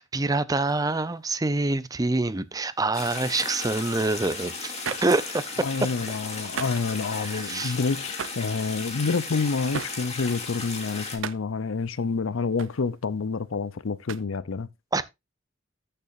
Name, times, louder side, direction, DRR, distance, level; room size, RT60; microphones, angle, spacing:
voice 1, 0.0-4.7 5.0-5.4 7.2-7.8 14.9-15.0, right 2 dB, 20° right, 0.6 m, -26 dB
sound 1, 0.7-1.4 4.8-6.0 6.3-6.9 7.5-7.6 8.0-13.7 14.0-14.2, right 7 dB, 70° right, 0.6 m, -40 dB
sound 2, 2.9-11.2, left 4 dB, 30° left, 2.5 m, -35 dB
voice 2, 5.6-14.7, left 4 dB, 75° left, 0.6 m, -28 dB
14.0 x 6.8 x 2.6 m
head